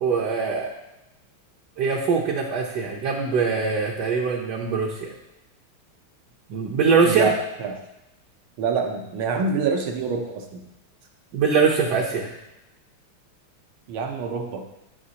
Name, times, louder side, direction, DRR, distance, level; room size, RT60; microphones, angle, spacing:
voice 1, 0.0-0.7 1.8-5.1 6.5-7.3 11.3-12.3, right 5 dB, 60° right, -2 dB, 1.3 m, -22 dB
voice 2, 8.6-10.6 13.9-14.6, right 5 dB, 80° right, 2 dB, 1.8 m, -26 dB
12.5 x 5.2 x 2.9 m, 0.93 s
omnidirectional pair, 2.3 m